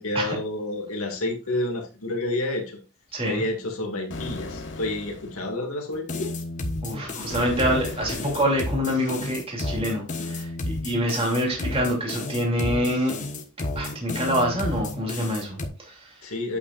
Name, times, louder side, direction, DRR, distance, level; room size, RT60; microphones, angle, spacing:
voice 1, 0.0-2.8 3.2-6.3 16.2-16.6, left 2 dB, 75° left, 2.2 m, -29 dB
voice 2, 3.1-3.4 6.8-13.2 13.7-16.1, equal, 25° right, 2.8 m, -26 dB
sound 1, 4.1-5.5 7.3-8.7, left 2 dB, 55° left, 1.3 m, -36 dB
sound 2, 5.9-15.7, left 2 dB, 35° left, 1.3 m, -32 dB
8.5 x 8.3 x 2.5 m
head